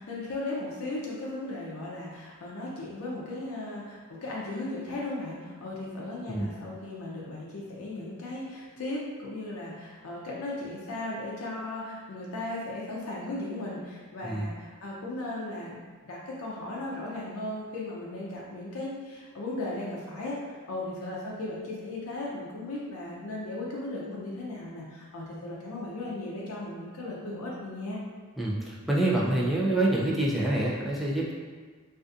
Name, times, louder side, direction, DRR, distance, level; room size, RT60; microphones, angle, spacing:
voice 1, 0.0-28.0, left 2 dB, 80° left, -4 dB, 0.4 m, -36 dB
voice 2, 28.4-31.3, right 1 dB, ahead, -5 dB, 0.3 m, -26 dB
2.5 x 2.4 x 2.4 m, 1.5 s
head